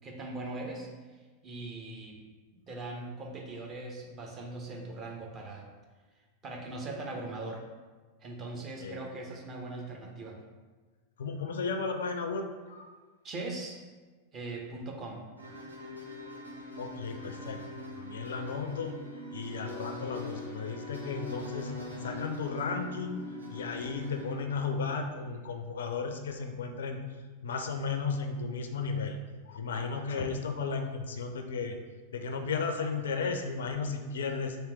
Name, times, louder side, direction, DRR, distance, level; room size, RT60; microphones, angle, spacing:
voice 1, 0.0-0.9 1.4-2.2 2.5-5.7 6.4-7.6 8.2-10.4 13.2-13.8 14.3-15.2, right 2 dB, 30° right, 0 dB, 0.8 m, -40 dB
voice 2, 8.5-9.0 11.2-12.9 16.8-17.6 18.0-19.0 19.3-23.2 23.5-27.0 27.4-29.2 29.5-31.8 32.1-34.6, left 4 dB, 65° left, 6 dB, 0.4 m, -34 dB
sound 1, 15.4-24.3, left 2 dB, 85° right, 0.7 m, -42 dB
3.4 x 2.9 x 4.4 m, 1.4 s
figure-of-eight pair, 90°, 0 cm